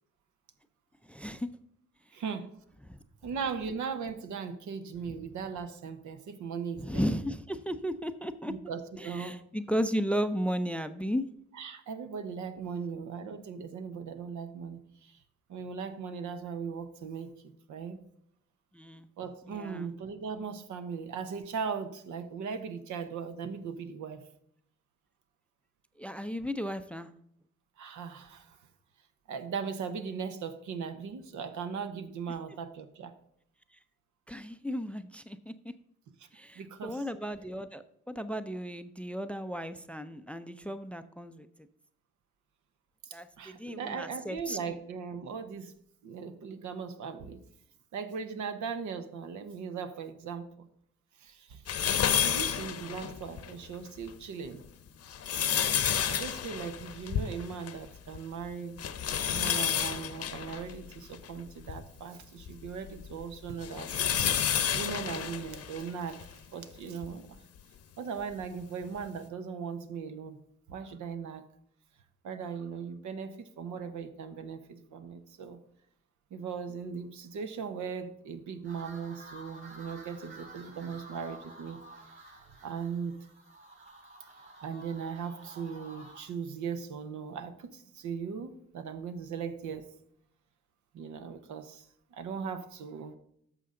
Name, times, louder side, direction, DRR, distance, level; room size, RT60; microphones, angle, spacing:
voice 1, 1.0-1.5 2.9-3.0 6.8-11.3 18.7-19.1 19.5-19.9 26.0-27.1 34.3-35.5 36.3-41.5 43.1-44.8, equal, 5° left, 12 dB, 0.5 m, -35 dB
voice 2, 2.1-2.5 3.2-7.0 8.5-9.4 11.6-15.2 15.5-17.3 17.7-18.0 19.2-24.2 27.8-28.6 29.3-33.1 36.5-37.0 43.0-45.7 46.0-47.4 47.9-50.7 51.2-51.6 52.2-54.6 56.1-58.8 59.3-64.3 64.7-67.4 68.0-70.4 70.7-71.4 72.2-75.6 76.3-81.8 82.3-83.1 84.6-89.9 90.9-93.1, right 6 dB, 75° right, 9 dB, 1.0 m, -38 dB
sound 1, 51.7-53.5 54.0-54.1 54.9-57.9 58.1-58.2 58.8-61.8 62.4-66.3 67.0-67.1 68.4-68.5, left 8 dB, 55° left, 0.9 m, -30 dB
sound 2, 78.6-86.2, right 2 dB, 40° right, 3.4 m, -51 dB
11.0 x 6.7 x 3.8 m, 0.72 s
cardioid pair, 90°, 30 cm